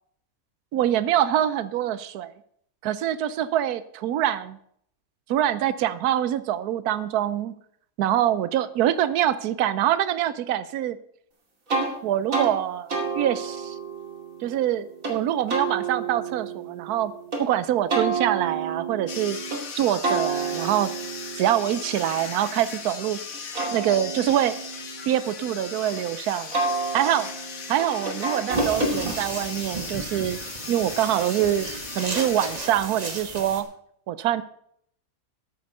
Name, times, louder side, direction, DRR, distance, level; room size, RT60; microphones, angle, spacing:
voice 1, 0.7-2.3 2.8-4.6 5.3-7.5 8.0-11.0 12.0-13.8 14.4-17.1 17.4-19.4 19.7-20.9 21.4-23.2 23.7-24.6 25.1-26.6 26.9-27.3 27.7-30.4 30.7-31.7 31.9-33.7 34.1-34.4, right 11 dB, 90° right, 14 dB, 1.2 m, -24 dB
sound 1, 11.7-11.9 12.3-12.5 12.9-15.2 15.5-17.4 17.9-19.6 20.0-22.9 23.3-26.0 26.5-29.5, right 4 dB, 65° right, 2.9 m, -30 dB
sound 2, 19.1-32.7, left 5 dB, 65° left, 1.7 m, -38 dB
sound 3, 28.5-33.6, right 2 dB, 25° right, 1.6 m, -33 dB
13.5 x 8.0 x 5.4 m, 0.68 s
omnidirectional pair, 1.6 m